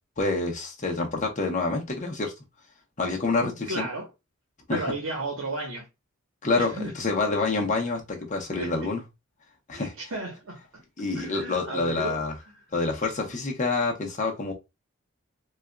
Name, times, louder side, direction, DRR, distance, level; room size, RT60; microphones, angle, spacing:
voice 1, 0.2-2.3 3.0-3.9 4.7-4.8 6.4-9.0 9.7-9.9 11.0-12.3 12.7-14.5, left 3 dB, 40° left, 0.9 m, -27 dB
voice 2, 3.4-4.1 4.7-5.9 6.5-6.9 7.5-7.6 8.6-8.9 9.7-10.8 11.1-12.3, right 2 dB, 85° right, 1.0 m, -34 dB
4.3 x 2.4 x 2.2 m
head